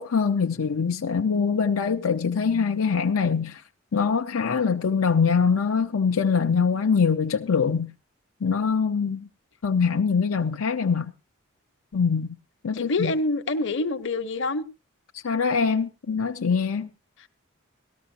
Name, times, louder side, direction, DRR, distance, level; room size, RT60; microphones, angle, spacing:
voice 1, 0.0-3.6 3.9-7.9 8.4-9.3 9.6-11.1 11.9-12.4 12.6-13.1 15.2-16.9, left 5 dB, 85° left, 0.6 m, -23 dB
voice 2, 12.7-14.6, left 2 dB, 60° left, 0.9 m, -26 dB
18.0 x 13.5 x 2.8 m
head